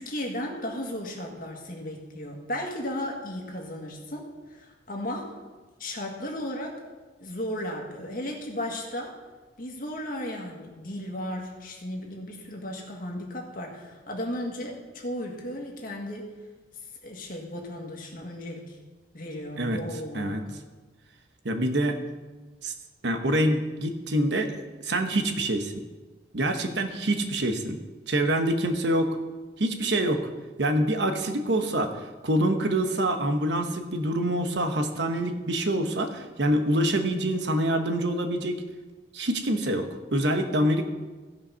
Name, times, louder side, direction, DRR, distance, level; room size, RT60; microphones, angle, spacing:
voice 1, 0.0-5.4 5.8-6.8 7.2-9.1 9.6-16.3 17.0-18.8 19.1-20.5, left 1 dB, 50° left, 0 dB, 1.9 m, -35 dB
voice 2, 21.4-22.0 22.6-22.7 23.0-24.5 24.8-25.7 26.3-27.8 28.1-29.2 29.6-30.2 30.6-31.9 32.2-38.6 39.1-40.8, right 1 dB, 75° right, 5 dB, 1.1 m, -25 dB
16.0 x 5.5 x 5.6 m, 1.3 s
head